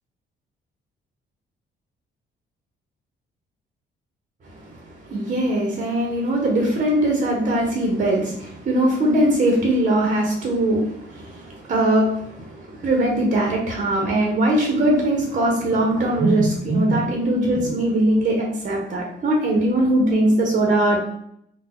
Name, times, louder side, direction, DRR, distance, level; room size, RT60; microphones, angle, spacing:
voice 1, 5.1-21.0, right 1 dB, 40° right, 0 dB, 0.8 m, -21 dB
2.7 x 2.2 x 3.7 m, 0.72 s
cardioid pair, 90°, 20 cm